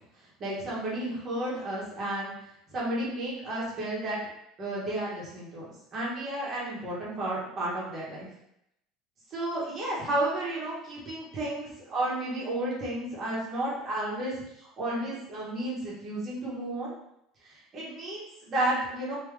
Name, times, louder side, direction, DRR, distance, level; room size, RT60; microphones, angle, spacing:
voice 1, 0.4-2.3 2.7-4.2 4.6-5.7 5.9-8.3 9.3-16.9 17.4-19.2, right 1 dB, 25° right, -6 dB, 1.2 m, -32 dB
3.6 x 2.9 x 3.2 m, 0.78 s
cardioid pair, 175°, 0 cm